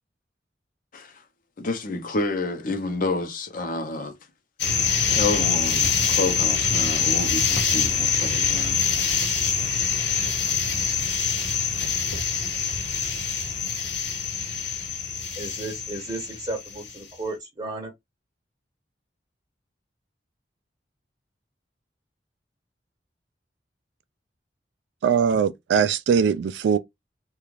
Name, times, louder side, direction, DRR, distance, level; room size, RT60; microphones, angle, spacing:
voice 1, 1.6-4.1 5.1-8.8, left 2 dB, 50° left, 0.7 m, -29 dB
sound 1, 4.6-16.9, left 6 dB, 70° left, 1.0 m, -24 dB
voice 2, 15.4-17.9, right 2 dB, 25° right, 0.7 m, -33 dB
voice 3, 25.0-26.8, right 7 dB, 75° right, 0.3 m, -21 dB
2.5 x 2.3 x 3.0 m
head